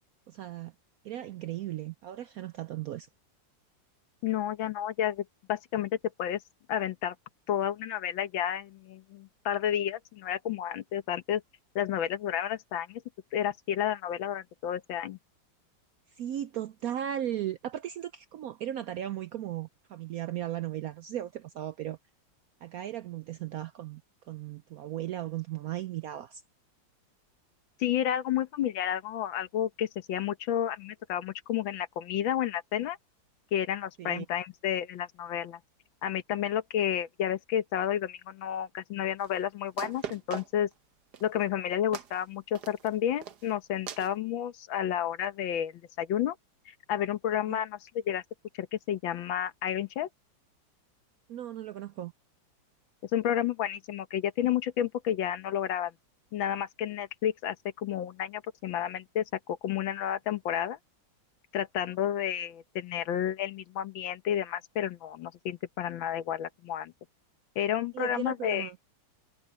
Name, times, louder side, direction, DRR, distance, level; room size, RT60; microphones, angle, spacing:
voice 1, 0.3-0.7 1.0-3.1 16.1-22.0 22.6-24.0 24.3-26.4 34.0-34.2 47.5-47.6 51.3-52.1 67.9-68.8, right 12 dB, 75° right, 0.8 m, -36 dB
voice 2, 4.2-6.4 6.7-7.2 7.5-11.4 11.8-13.0 13.3-15.2 27.8-33.0 33.5-35.6 36.0-40.7 41.2-46.4 46.7-48.2 48.5-50.1 53.1-55.9 56.3-60.8 61.5-66.9 67.6-68.7, left 10 dB, 85° left, 1.8 m, -31 dB
sound 1, 39.2-39.3 39.8-40.7 41.1-41.4 41.9-42.2 42.5-42.9 43.2-43.5 43.9-44.1, right 8 dB, 60° right, 1.6 m, -39 dB
omnidirectional pair, 2.1 m